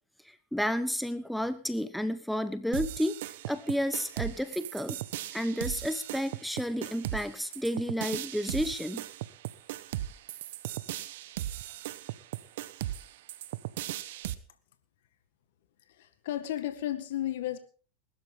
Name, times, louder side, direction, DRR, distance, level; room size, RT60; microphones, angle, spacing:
voice 1, 0.2-3.2 3.5-5.0 5.3-9.0, equal, ahead, 12 dB, 0.9 m, -31 dB
sound 1, 2.7-14.3, right 14 dB, 70° right, 1.1 m, -37 dB
voice 2, 15.9-17.6, left 12 dB, 70° left, 10 dB, 1.7 m, -33 dB
20.5 x 12.5 x 3.8 m, 0.40 s
hypercardioid pair, 105°, 0 cm